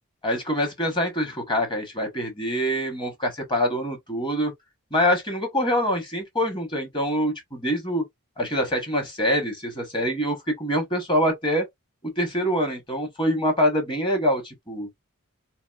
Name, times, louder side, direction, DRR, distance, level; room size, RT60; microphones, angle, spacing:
voice 1, 0.2-4.5 4.9-8.0 8.4-11.7 12.2-14.9, equal, 20° left, 1.0 m, -25 dB
2.9 x 2.5 x 2.3 m
head